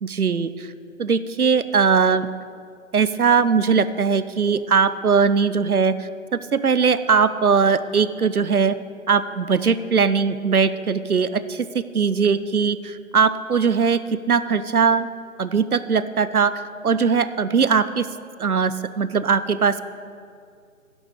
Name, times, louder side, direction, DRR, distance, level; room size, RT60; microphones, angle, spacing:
voice 1, 0.0-0.7 1.0-2.3 2.9-8.8 9.1-14.0 14.3-15.1 15.4-18.1 18.4-19.8, right 5 dB, 85° right, 14 dB, 0.7 m, -20 dB
11.0 x 7.2 x 6.5 m, 2.3 s
figure-of-eight pair, 155°, 43 cm